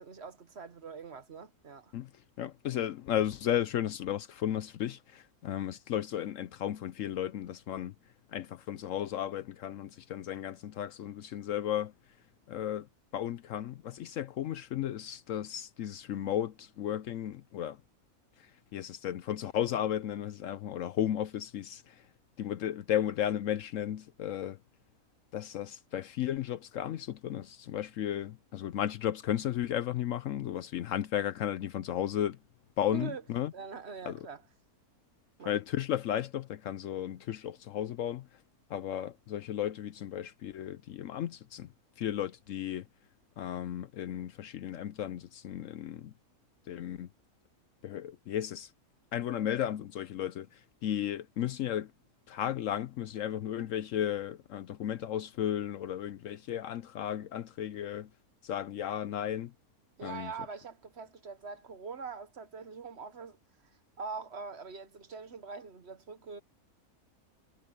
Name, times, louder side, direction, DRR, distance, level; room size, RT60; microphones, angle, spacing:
voice 1, 0.0-1.9 32.9-33.2 33.5-34.4 35.4-35.6 60.0-66.4, right 5 dB, 50° right, 1.2 m, -43 dB
voice 2, 2.4-7.9 8.3-11.9 12.5-12.9 13.1-17.8 18.4-22.0 22.4-24.6 25.3-32.4 32.8-33.5 34.1-34.3 35.5-38.3 38.7-41.7 42.0-42.9 43.4-46.1 46.7-47.1 47.8-48.7 49.1-51.9 52.3-58.1 58.4-59.5 60.0-60.3, left 10 dB, 65° left, 0.9 m, -34 dB
omnidirectional pair, 1.6 m